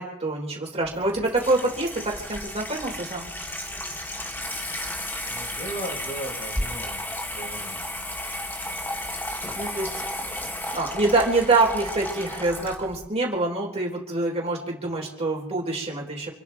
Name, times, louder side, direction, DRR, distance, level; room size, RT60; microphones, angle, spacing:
voice 1, 0.0-3.3 9.5-16.3, right 2 dB, 30° right, -2 dB, 3.8 m, -26 dB
Water tap faucet / Sink (filling or washing), 0.8-13.1, left 1 dB, 10° left, 1.6 m, -33 dB
voice 2, 5.3-7.8, right 1 dB, 25° left, -2 dB, 5.9 m, -37 dB
28.5 x 9.9 x 4.7 m, 0.79 s
head